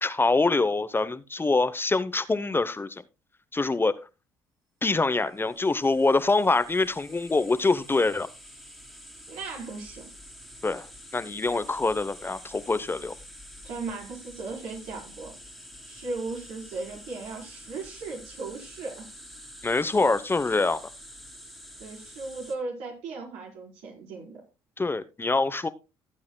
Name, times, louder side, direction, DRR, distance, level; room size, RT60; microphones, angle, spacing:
voice 1, 0.0-3.0 3.5-4.0 4.8-8.3 10.6-10.9 11.1-13.1 19.6-20.8 24.8-25.7, left 3 dB, 20° left, 0.9 m, -25 dB
sound 1, 5.3-22.6, equal, ahead, 2.4 m, -47 dB
voice 2, 9.3-10.1 13.6-15.3 15.8-19.1 21.8-24.4, right 3 dB, 75° right, 4.8 m, -37 dB
17.0 x 8.6 x 2.3 m
hypercardioid pair, 65°, 10 cm